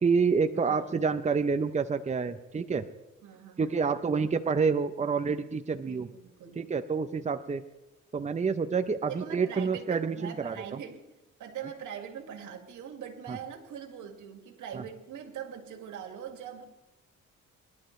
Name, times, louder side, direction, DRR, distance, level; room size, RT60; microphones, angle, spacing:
voice 1, 0.0-2.9 3.6-6.1 6.6-7.6 8.1-10.8 13.3-13.4 14.7-14.8, right 5 dB, 25° right, 9 dB, 0.7 m, -28 dB
voice 2, 0.5-0.9 3.2-4.1 5.8-6.6 9.0-11.0 11.4-16.6, right 8 dB, 80° right, 4 dB, 2.3 m, -42 dB
24.0 x 11.5 x 3.3 m, 1.0 s
cardioid pair, 90°, 30 cm